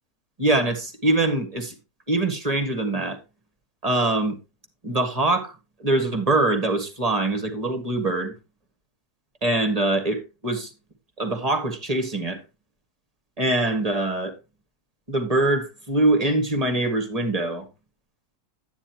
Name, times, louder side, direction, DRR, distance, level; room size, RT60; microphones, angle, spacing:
voice 1, 0.4-1.7 2.1-3.2 3.8-4.4 4.8-8.4 9.4-10.7 11.2-12.4 13.4-14.3 15.1-17.7, right 2 dB, 25° right, 1.9 m, -23 dB
11.5 x 10.0 x 2.9 m
omnidirectional pair, 1.6 m